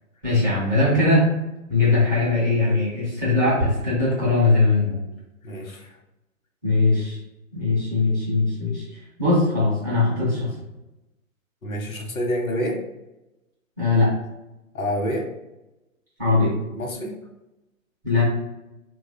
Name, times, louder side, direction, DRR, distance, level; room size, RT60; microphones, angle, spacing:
voice 1, 0.2-1.3 1.7-5.0 6.6-7.2 7.5-8.8 9.2-10.5 13.8-14.1 16.2-16.5 18.0-18.2, left 3 dB, 15° right, -9 dB, 0.4 m, -20 dB
voice 2, 5.4-6.0 11.6-12.8 14.7-15.3 16.7-17.2, equal, 85° left, 1 dB, 0.9 m, -27 dB
3.0 x 2.3 x 2.6 m, 0.98 s
figure-of-eight pair, 130°, 41 cm